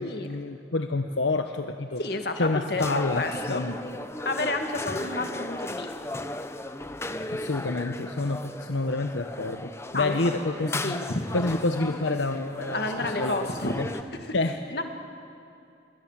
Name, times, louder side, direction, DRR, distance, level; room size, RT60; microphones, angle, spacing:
voice 1, 0.0-2.0 2.4-3.8 7.3-11.0 11.3-13.4 13.8-13.9 14.3-14.6, left 2 dB, 80° left, 6 dB, 1.0 m, -28 dB
voice 2, 2.0-2.9 3.1-3.6 4.3-5.9 7.1-7.2 9.9-10.2 10.8-11.3 12.7-13.8 14.2-14.3 14.7-14.8, left 2 dB, 55° left, 5 dB, 2.0 m, -30 dB
sound 1, 2.8-14.0, left 2 dB, 15° left, 0.8 m, -36 dB
27.5 x 21.5 x 7.5 m, 2.6 s
head